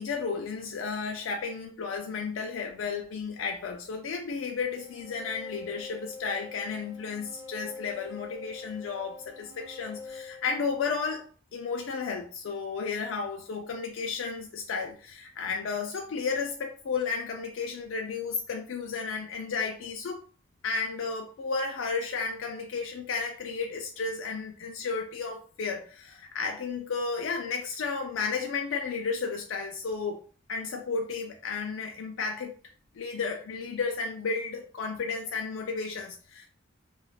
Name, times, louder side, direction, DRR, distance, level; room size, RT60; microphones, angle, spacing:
voice 1, 0.0-11.2 11.5-20.2 20.6-30.2 30.5-32.5 32.9-36.5, left 5 dB, 70° left, 0.4 m, -33 dB
sound 1, 4.7-11.2, left 4 dB, 15° right, 0.5 m, -45 dB
2.3 x 2.0 x 3.2 m
head